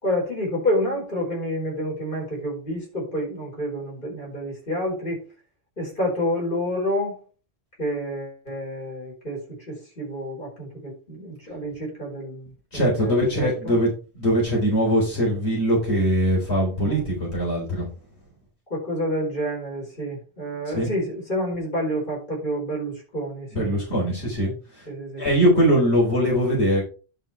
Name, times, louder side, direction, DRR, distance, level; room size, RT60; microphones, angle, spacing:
voice 1, 0.0-5.2 5.8-7.2 7.8-9.4 9.7-13.8 16.8-17.0 18.7-24.1 24.9-25.3, equal, 50° left, -2 dB, 4.8 m, -29 dB
voice 2, 12.7-13.9 14.1-17.9 20.7-20.9 23.5-24.9 25.2-26.8, equal, 80° left, -3 dB, 4.1 m, -21 dB
10.5 x 4.7 x 4.6 m, 0.35 s
omnidirectional pair, 1.1 m